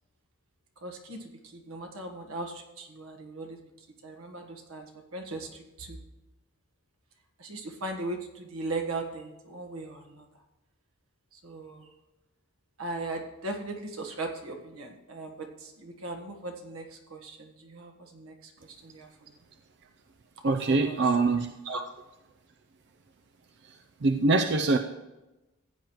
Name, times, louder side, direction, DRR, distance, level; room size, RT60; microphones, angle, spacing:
voice 1, 0.8-6.0 7.4-10.2 11.3-11.9 12.8-19.4 20.4-21.1 21.6-21.8, right 2 dB, 90° right, 4 dB, 1.4 m, -39 dB
voice 2, 20.4-21.5 24.0-24.8, right 3 dB, 55° right, 5 dB, 0.5 m, -23 dB
15.5 x 9.0 x 3.1 m, 1.0 s
head